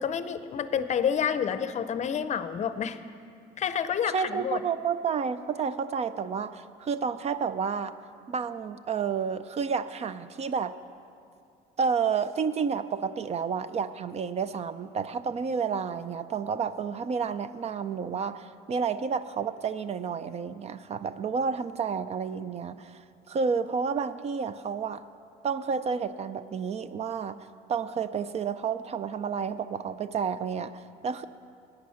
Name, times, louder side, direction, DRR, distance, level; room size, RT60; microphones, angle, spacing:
voice 1, 0.0-3.0 3.6-4.6, left 8 dB, 45° left, 12 dB, 0.6 m, -29 dB
voice 2, 4.1-7.9 8.3-10.7 11.8-23.0 23.3-25.0 25.4-27.4 27.7-31.2, right 6 dB, 40° right, 13 dB, 0.4 m, -30 dB
15.0 x 9.7 x 5.7 m, 2.4 s
cardioid pair, 110°, 17 cm